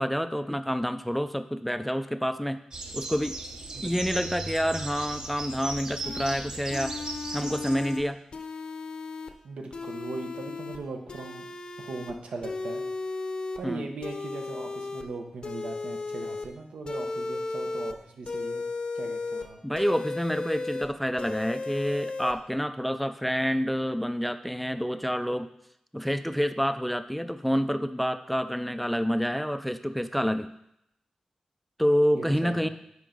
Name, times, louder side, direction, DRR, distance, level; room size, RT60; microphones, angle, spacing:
voice 1, 0.0-2.6 2.9-3.4 3.8-7.0 7.3-8.2 13.6-13.9 19.6-25.5 25.9-30.5 31.8-32.7, equal, ahead, 10 dB, 0.3 m, -28 dB
sound 1, 2.7-8.0, right 2 dB, 40° right, 0.8 m, -37 dB
sound 2, 6.0-6.3 6.7-8.0 8.3-9.3 9.7-10.8 11.1-12.1 12.4-13.6 14.0-15.0 15.4-16.5 16.9-17.9 18.3-19.4 19.8-20.9 21.2-22.3, left 3 dB, 50° left, 0.7 m, -35 dB
voice 2, 9.4-11.4 11.8-12.8 13.6-18.6 18.9-19.6 32.1-32.7, right 3 dB, 85° right, 3 dB, 1.0 m, -39 dB
9.6 x 4.6 x 3.9 m, 0.79 s
wide cardioid pair, 110°, 2 cm